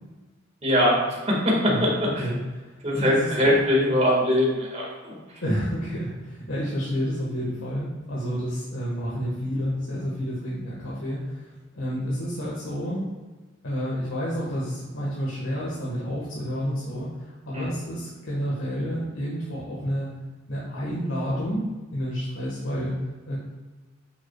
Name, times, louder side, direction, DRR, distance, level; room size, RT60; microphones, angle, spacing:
voice 1, 0.6-1.0 1.3-1.9 2.8-5.1 17.5-17.7, left 1 dB, 35° right, -3 dB, 1.9 m, -21 dB
voice 2, 2.2-3.6 5.4-13.0 13.6-20.2 20.5-21.6 21.9-23.4, equal, 70° left, -7 dB, 1.6 m, -30 dB
8.7 x 6.2 x 2.4 m, 1.3 s
head